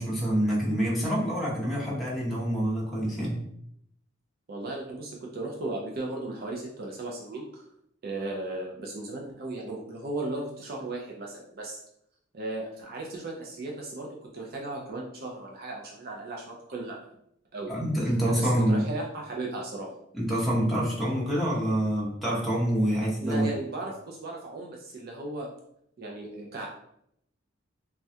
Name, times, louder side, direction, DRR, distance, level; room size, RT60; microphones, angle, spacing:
voice 1, 0.0-3.4 17.7-18.8 20.1-23.5, right 1 dB, ahead, -7 dB, 0.8 m, -26 dB
voice 2, 4.5-7.6 8.0-11.8 12.3-14.1 14.3-17.0 17.5-17.7 18.3-19.9 23.2-25.5 26.0-26.7, right 2 dB, 50° right, -1 dB, 0.5 m, -36 dB
3.4 x 2.2 x 2.7 m, 0.74 s
head